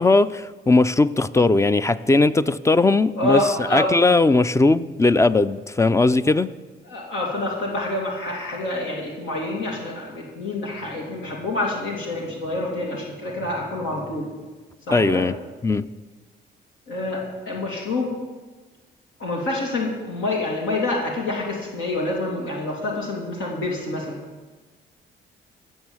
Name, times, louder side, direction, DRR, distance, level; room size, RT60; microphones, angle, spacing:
voice 1, 0.0-6.5 14.9-15.3 15.6-15.9, left 3 dB, 15° left, 0.4 m, -18 dB
voice 2, 3.2-3.9 6.8-14.3 14.9-15.3 16.9-18.2 19.2-24.2, left 2 dB, 80° left, 2.4 m, -27 dB
16.0 x 6.2 x 7.2 m
cardioid pair, 90°, 20 cm